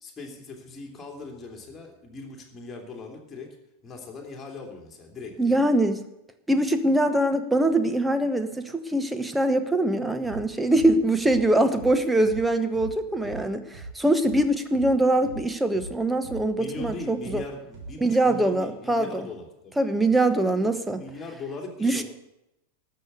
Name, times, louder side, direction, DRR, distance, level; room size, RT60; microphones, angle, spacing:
voice 1, 0.0-3.6 3.8-5.6 16.5-19.8 20.4-22.0, left 3 dB, 20° left, 1 dB, 2.9 m, -40 dB
voice 2, 5.4-6.0 6.5-17.4 18.0-19.2 19.8-21.0 21.8-22.0, right 1 dB, 5° right, 9 dB, 1.0 m, -23 dB
sound 1, 10.2-10.4 10.7-14.4 14.7-18.2, right 3 dB, 50° right, 2.8 m, -41 dB
13.0 x 6.7 x 8.0 m, 0.87 s
figure-of-eight pair, 90°, 0 cm